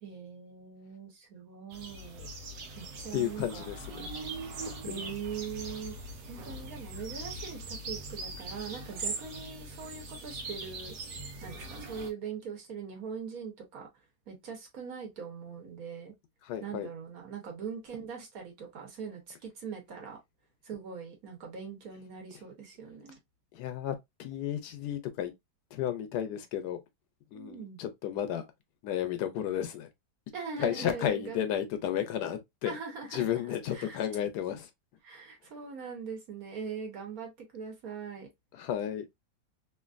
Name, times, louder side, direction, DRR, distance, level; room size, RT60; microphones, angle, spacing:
voice 1, 0.0-2.3 2.8-3.6 4.8-6.0 6.3-10.9 11.4-13.9 14.3-16.1 16.6-20.2 20.6-23.2 27.3-27.8 30.3-31.6 32.6-33.3 33.7-34.0 35.0-38.3, right 6 dB, 60° right, 1.4 m, -41 dB
sound 1, 1.7-12.1, right 2 dB, 80° right, 1.3 m, -41 dB
voice 2, 3.1-4.1 4.6-5.1 16.4-16.9 23.5-25.3 25.7-26.8 27.3-28.4 28.8-29.9 30.6-32.7 33.1-34.7 38.5-39.1, left 10 dB, 80° left, 1.2 m, -33 dB
3.1 x 2.5 x 2.4 m
omnidirectional pair, 1.8 m